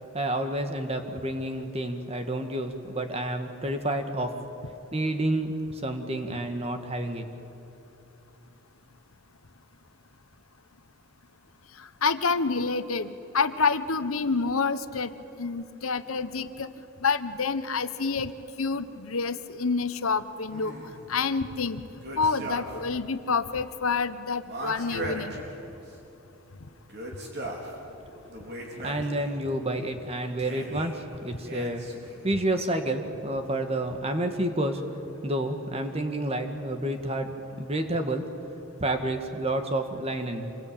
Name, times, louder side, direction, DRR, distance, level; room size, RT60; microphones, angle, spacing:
voice 1, 0.1-4.3 4.9-7.3 28.8-31.8 32.2-34.8 35.2-38.3 38.8-40.6, right 1 dB, 30° right, 6 dB, 1.8 m, -29 dB
voice 2, 12.0-15.1 15.4-16.7 17.0-18.3 18.6-20.7 21.1-21.8 22.2-25.4 31.3-31.4, left 4 dB, 80° left, 12 dB, 1.1 m, -28 dB
sound 1, 20.5-21.1 22.0-23.0 23.2-23.3 24.4-26.0 26.8-27.7 28.3-29.4 30.4-31.0 31.5-32.2, right 1 dB, 50° right, 4.1 m, -38 dB
27.0 x 21.5 x 8.8 m, 2.9 s
head